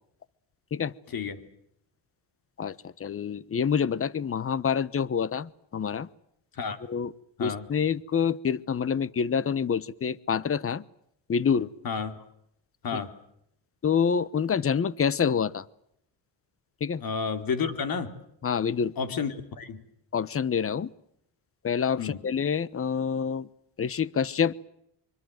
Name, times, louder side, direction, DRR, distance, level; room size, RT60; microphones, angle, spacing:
voice 1, 2.6-6.1 6.9-7.1 7.4-10.8 11.3-11.7 12.9-13.0 13.8-15.6 16.8-17.0 18.4-18.9 20.1-20.9 21.6-23.5 23.8-24.5, left 7 dB, 30° left, 19 dB, 1.1 m, -27 dB
voice 2, 11.8-12.2 12.8-13.1 17.0-18.1 19.0-19.8 22.0-22.2, left 5 dB, 50° left, 8 dB, 3.5 m, -31 dB
25.0 x 25.0 x 7.9 m, 0.75 s
cardioid pair, 105°, 44 cm